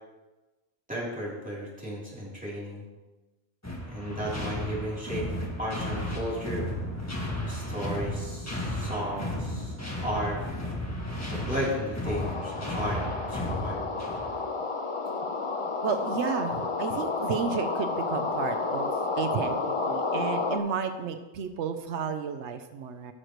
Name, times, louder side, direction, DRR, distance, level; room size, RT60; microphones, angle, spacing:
voice 1, 0.9-2.8 3.8-5.3 5.6-6.7 7.4-9.7 10.0-10.4 11.3-14.0, equal, 5° right, -7 dB, 3.3 m, -34 dB
sound 1, 3.6-14.4, left 1 dB, 15° left, 1.5 m, -34 dB
sound 2, 12.0-20.6, left 3 dB, 35° left, 0.6 m, -31 dB
voice 2, 15.8-18.9 19.2-23.1, right 6 dB, 85° right, 8 dB, 1.0 m, -32 dB
16.5 x 6.5 x 3.1 m, 1.1 s
omnidirectional pair, 1.2 m